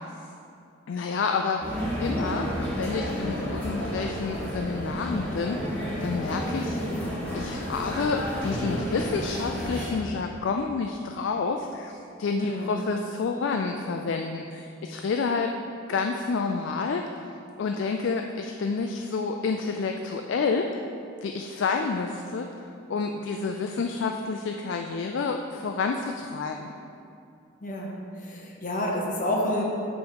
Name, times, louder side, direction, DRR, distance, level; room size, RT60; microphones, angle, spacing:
voice 1, 0.9-2.5 2.8-5.7 6.0-6.8 7.3-15.5 15.9-17.3 17.6-20.7 21.2-26.7, left 4 dB, 65° left, 4 dB, 0.3 m, -29 dB
sound 1, 1.6-9.9, equal, 5° left, 1.6 m, -31 dB
voice 2, 12.4-12.8 27.6-29.6, left 1 dB, 40° left, -1 dB, 0.9 m, -29 dB
6.4 x 5.3 x 4.6 m, 2.6 s
head